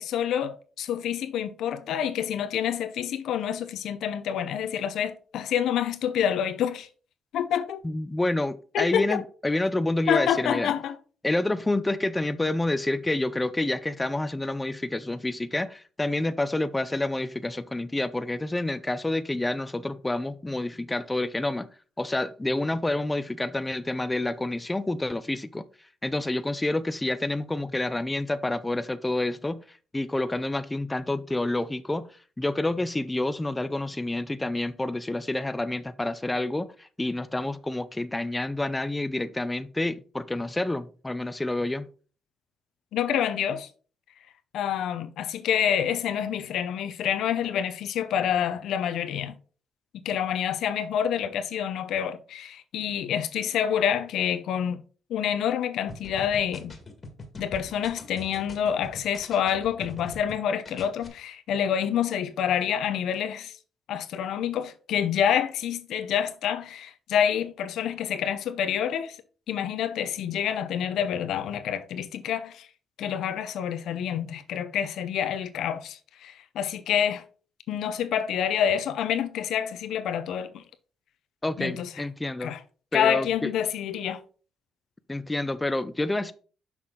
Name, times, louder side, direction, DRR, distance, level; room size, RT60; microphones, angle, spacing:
voice 1, 0.0-6.9 7.3-7.8 8.7-9.2 10.1-11.0 42.9-43.7 44.5-49.3 50.0-54.8 55.1-56.7 57.4-63.6 63.9-69.2 69.5-72.7 73.0-77.2 77.7-80.6 81.6-81.9 82.4-82.6 82.9-84.2, left 9 dB, 80° left, 0.7 m, -27 dB
voice 2, 7.8-10.7 11.2-21.7 22.0-25.6 26.0-32.1 32.4-41.9 81.4-82.5 82.9-83.5 85.1-86.3, left 2 dB, 15° left, 0.5 m, -28 dB
sound 1, 55.9-60.4 60.6-61.1, left 2 dB, 35° left, 1.7 m, -43 dB
6.1 x 5.8 x 3.8 m
cardioid pair, 90°, 0 cm